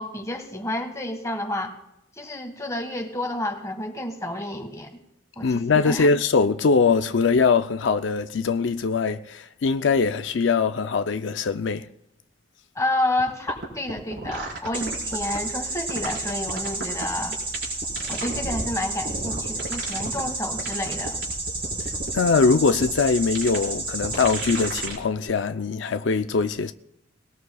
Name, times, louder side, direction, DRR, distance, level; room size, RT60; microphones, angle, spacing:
voice 1, 0.0-1.8 2.2-5.0 5.4-6.1 12.7-17.4 18.1-21.2, left 1 dB, 15° left, 1.6 m, -30 dB
voice 2, 5.4-11.9 22.1-26.7, left 4 dB, 85° left, 0.5 m, -22 dB
sound 1, 13.2-13.3 13.5-15.4 15.9-17.0 17.3-18.7 19.0-20.2 20.6-22.2 22.8-22.9 23.3-23.6 24.0-25.0 25.3-25.4, right 2 dB, 65° right, 4.6 m, -33 dB
sound 2, 14.7-24.9, right 3 dB, 30° right, 4.0 m, -31 dB
20.5 x 18.0 x 2.3 m
head